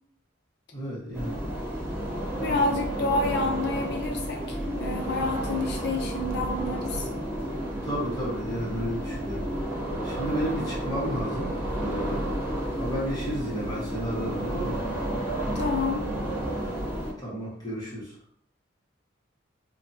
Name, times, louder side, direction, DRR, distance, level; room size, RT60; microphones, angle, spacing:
voice 1, 0.7-1.4 6.9-7.0 7.8-9.5 10.0-12.3 12.8-14.8 17.2-18.2, equal, 20° left, -7 dB, 1.1 m, -32 dB
sound 1, 1.1-17.1, right 1 dB, 15° right, 0.5 m, -31 dB
voice 2, 2.4-7.1 15.5-16.0, left 2 dB, 60° left, 2 dB, 0.6 m, -29 dB
2.7 x 2.3 x 2.6 m, 0.65 s
head